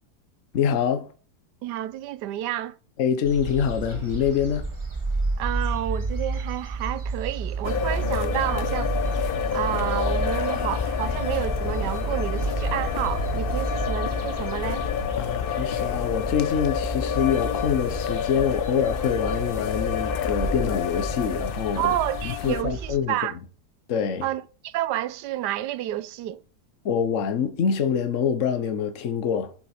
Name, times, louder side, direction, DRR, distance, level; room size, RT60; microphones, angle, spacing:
voice 1, 0.5-1.1 3.0-4.7 15.2-22.0 22.2-23.2 23.9-24.3 26.8-29.5, left 7 dB, 55° left, 1.2 m, -25 dB
voice 2, 1.6-2.8 5.4-8.9 9.5-14.9 21.8-23.4 24.2-26.4, right 13 dB, 85° right, 1.2 m, -30 dB
sound 1, 3.3-23.0, right 3 dB, 20° right, 1.5 m, -31 dB
sound 2, 7.6-22.6, left 8 dB, 70° left, 0.5 m, -29 dB
8.1 x 6.9 x 4.8 m
omnidirectional pair, 1.8 m